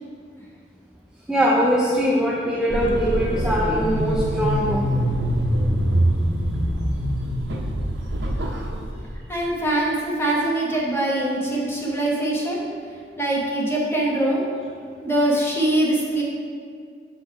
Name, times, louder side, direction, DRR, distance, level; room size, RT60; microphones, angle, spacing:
voice 1, 1.3-4.9, equal, 5° right, -4 dB, 0.4 m, -22 dB
sound 1, 2.7-8.9, right 1 dB, 65° right, 0.7 m, -24 dB
voice 2, 9.3-12.6 13.2-14.4 15.0-16.2, right 1 dB, 15° left, -4 dB, 1.1 m, -23 dB
6.1 x 4.4 x 4.6 m, 2.2 s
head